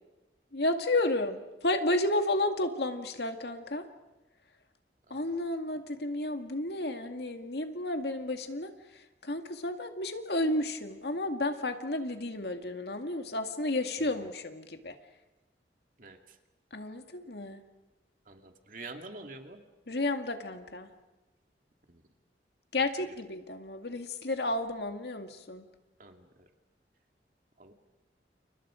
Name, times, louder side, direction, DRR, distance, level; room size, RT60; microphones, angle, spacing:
voice 1, 0.5-3.9 5.1-8.7 9.2-15.0 16.7-17.6 19.9-20.9 22.7-25.7, left 2 dB, 65° left, 6 dB, 2.1 m, -32 dB
voice 2, 18.3-19.6 26.0-26.3 27.6-27.7, right 2 dB, 50° right, 4 dB, 2.5 m, -45 dB
30.0 x 29.5 x 5.1 m, 1.1 s
head